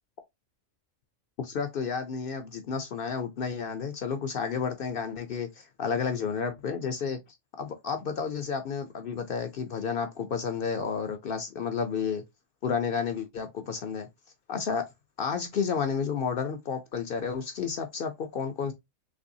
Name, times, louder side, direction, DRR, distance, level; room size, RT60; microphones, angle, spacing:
voice 1, 1.4-5.5 5.8-7.2 7.6-12.2 12.6-14.1 14.5-14.9 15.2-18.7, left 6 dB, 60° left, 0.6 m, -31 dB
3.3 x 3.1 x 2.6 m
omnidirectional pair, 1.3 m